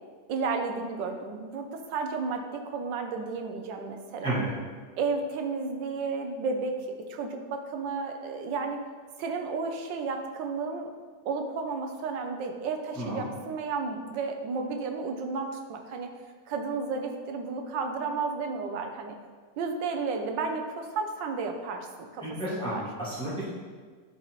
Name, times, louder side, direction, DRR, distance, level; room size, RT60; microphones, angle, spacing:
voice 1, 0.3-4.3 5.0-8.8 9.2-10.9 11.2-16.1 16.5-19.1 19.6-22.2 22.5-22.8, right 4 dB, 80° right, 4 dB, 1.4 m, -32 dB
voice 2, 22.2-23.4, right 1 dB, 5° left, -9 dB, 1.6 m, -32 dB
10.5 x 4.1 x 3.0 m, 1.5 s
omnidirectional pair, 2.0 m